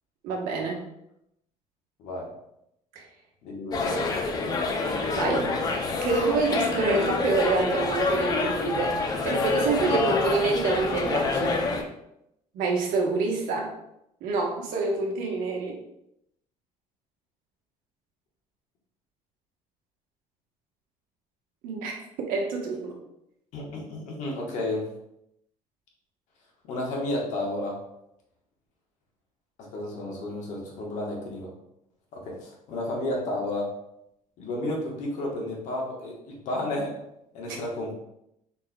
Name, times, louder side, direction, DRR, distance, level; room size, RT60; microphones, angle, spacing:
voice 1, 0.2-0.8 2.9-3.0 5.1-9.0 9.2-11.6 12.5-13.7 14.2-15.8 21.6-21.9 22.3-22.9 37.5-37.6, right 4 dB, 90° right, 0 dB, 1.1 m, -27 dB
voice 2, 3.4-4.3 23.5-24.9 26.7-27.8 29.7-31.5 32.1-33.7 34.4-36.9 37.3-38.0, left 1 dB, 60° left, -1 dB, 1.3 m, -32 dB
sound 1, 3.7-11.8, left 3 dB, 30° left, 0.4 m, -27 dB
4.4 x 4.1 x 2.3 m, 0.80 s
cardioid pair, 165°, 14 cm